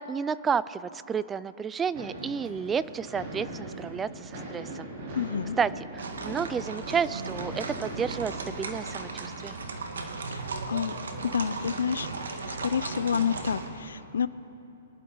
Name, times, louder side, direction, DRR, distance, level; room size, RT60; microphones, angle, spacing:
voice 1, 0.0-4.9 5.6-9.6, right 6 dB, 15° right, 18 dB, 0.3 m, -31 dB
sound 1, 1.9-13.3, right 2 dB, 50° right, 3.4 m, -42 dB
voice 2, 5.1-5.6 10.3-10.4 10.7-10.9 11.3-12.1 12.5-14.3, left 7 dB, 85° left, 17 dB, 0.5 m, -29 dB
sound 2, 6.0-13.7, right 3 dB, 85° right, 1.5 m, -36 dB
24.0 x 11.5 x 3.9 m, 2.8 s
hypercardioid pair, 140°, 0 cm